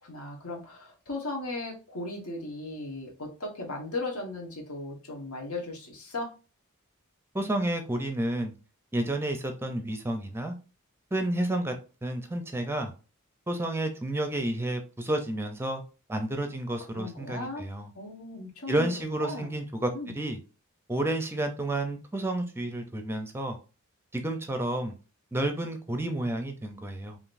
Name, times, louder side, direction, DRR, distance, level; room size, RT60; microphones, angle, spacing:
voice 1, 0.0-6.3 16.9-17.6 17.9-18.9 19.2-19.6 19.9-20.2, left 2 dB, 85° left, 0 dB, 1.3 m, -37 dB
voice 2, 7.3-8.5 8.9-10.5 11.1-11.7 12.0-12.9 13.5-15.8 16.1-17.9 18.7-20.4 20.9-23.6 24.1-24.9 25.3-27.2, right 1 dB, 10° right, 6 dB, 0.5 m, -30 dB
4.9 x 2.9 x 2.5 m, 0.33 s
head